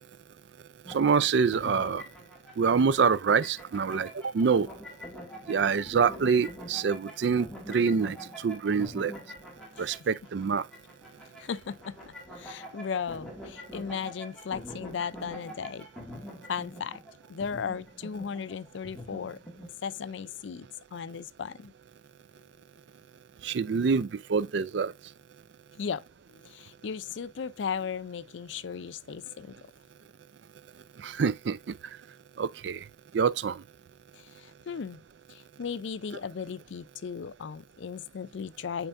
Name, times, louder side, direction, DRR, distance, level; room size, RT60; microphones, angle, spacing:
sound 1, 0.9-19.7, equal, 5° left, 1.9 m, -45 dB
voice 1, 0.9-2.0 2.6-4.1 4.3-4.7 5.5-8.2 8.4-9.1 9.8-10.6 23.4-24.9 31.0-31.6 32.4-32.8 33.1-33.6, right 5 dB, 70° right, 0.4 m, -25 dB
voice 2, 11.4-12.0 12.3-15.9 16.5-17.0 17.3-19.4 19.8-21.7 25.8-26.0 26.3-29.5 34.1-35.0 35.3-38.9, left 6 dB, 80° left, 0.4 m, -36 dB
8.9 x 4.4 x 2.5 m
head